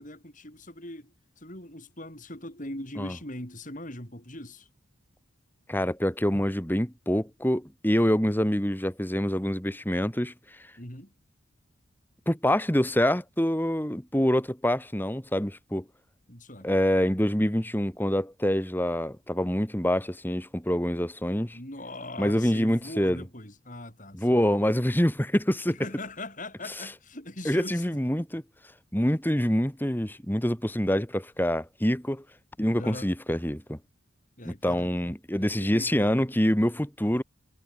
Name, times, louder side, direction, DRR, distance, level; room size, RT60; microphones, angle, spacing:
voice 1, 0.0-4.7 10.8-11.1 16.3-16.7 21.5-24.4 25.7-27.8 32.7-33.1 34.4-36.1, left 1 dB, 40° left, 7.7 m, -41 dB
voice 2, 5.7-10.7 12.3-15.8 16.6-21.6 22.2-23.2 24.1-25.8 27.4-28.4 28.9-32.2 32.6-33.8 34.4-37.2, equal, 10° left, 2.1 m, -26 dB
head